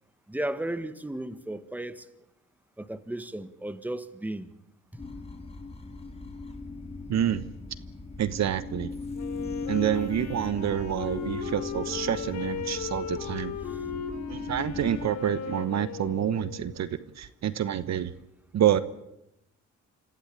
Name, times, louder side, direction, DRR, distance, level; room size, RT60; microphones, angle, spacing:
voice 1, 0.3-2.1 2.8-4.5 4.9-5.0 13.6-13.8, right 1 dB, 5° right, 1.6 m, -35 dB
sound 1, 5.0-15.1, left 3 dB, 20° left, 3.1 m, -38 dB
voice 2, 7.1-7.4 8.2-8.9 9.7-13.6 14.3-18.1 18.5-18.8, right 10 dB, 60° right, 1.2 m, -28 dB
Wind instrument woodwind instrument, 9.1-16.9, left 7 dB, 70° left, 3.8 m, -37 dB
26.5 x 16.0 x 8.8 m
cardioid pair, 90°, 30 cm